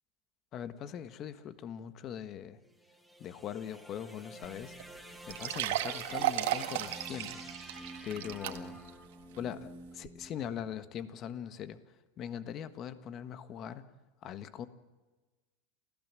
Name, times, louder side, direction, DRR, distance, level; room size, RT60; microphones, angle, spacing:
voice 1, 0.5-2.6 3.2-4.7 5.3-7.5 8.0-8.8 9.4-11.8 12.2-13.9 14.2-14.7, left 9 dB, 35° left, 12 dB, 1.5 m, -41 dB
sound 1, 2.6-11.0, right 1 dB, ahead, 1.8 m, -49 dB
sound 2, 4.4-4.5 4.8-4.9 5.3-8.9 9.4-9.5 10.0-10.1, right 15 dB, 75° right, 1.8 m, -34 dB
28.5 x 16.0 x 7.6 m, 1.2 s
supercardioid pair, 145°, 0 cm